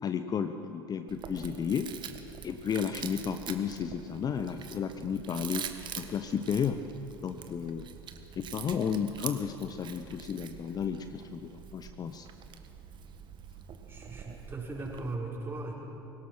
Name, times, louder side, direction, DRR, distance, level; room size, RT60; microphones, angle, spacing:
voice 1, 0.0-1.9 2.4-5.7 6.0-6.8 7.2-7.9 8.4-12.3, left 7 dB, 30° left, 9 dB, 0.8 m, -33 dB
Chewing mastication, 1.1-15.2, right 8 dB, 35° right, 1.6 m, -45 dB
voice 2, 13.9-15.7, right 2 dB, 15° right, -4 dB, 6.1 m, -38 dB
24.5 x 17.5 x 6.2 m, 3.0 s
figure-of-eight pair, 70°, 13 cm